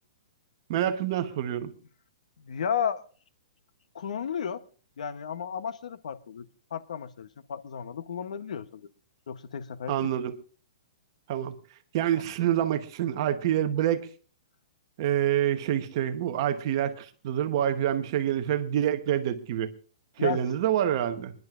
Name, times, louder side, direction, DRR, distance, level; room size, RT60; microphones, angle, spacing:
voice 1, 0.7-1.7 9.9-10.3 11.3-11.5 11.9-14.1 15.0-19.7 20.2-21.3, right 11 dB, 35° right, 1.0 m, -27 dB
voice 2, 2.5-3.0 3.9-4.6 5.0-6.5 6.7-8.9 9.3-10.1 12.1-12.2 20.2-20.4, left 8 dB, 70° left, 0.9 m, -33 dB
29.0 x 10.5 x 2.5 m
hypercardioid pair, 170°, 4 cm